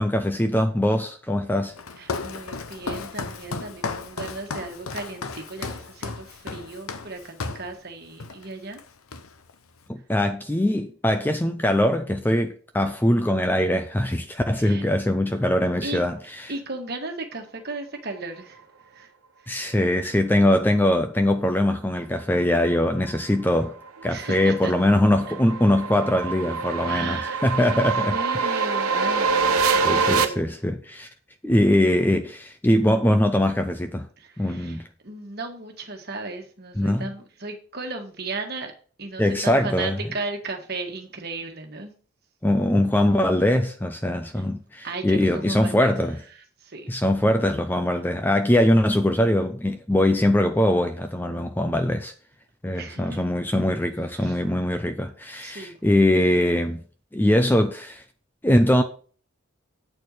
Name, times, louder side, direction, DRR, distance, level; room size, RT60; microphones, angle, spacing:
voice 1, 0.0-1.7 9.9-16.1 19.5-23.8 24.0-28.1 29.8-31.1 31.4-34.1 34.4-34.8 36.8-37.1 39.2-40.0 42.4-46.2 46.9-52.1 52.6-56.8 57.1-58.0 58.4-58.8, left 1 dB, 10° left, 0.5 m, -22 dB
Walk footsteps, 1.7-7.7 8.2-8.5 8.7-9.5, left 4 dB, 80° left, 0.8 m, -34 dB
voice 2, 2.0-8.8 14.5-14.8 15.8-16.0 16.5-19.1 19.4-19.7 24.0-24.7 26.9-30.5 34.2-38.7 39.0-41.9 44.3-44.4 44.8-46.0 46.3-46.9 52.7-53.2 54.1-54.4 55.4-55.8, right 3 dB, 45° right, 1.6 m, -36 dB
sound 1, 23.7-30.2, right 5 dB, 90° right, 1.0 m, -25 dB
8.6 x 4.5 x 6.4 m
head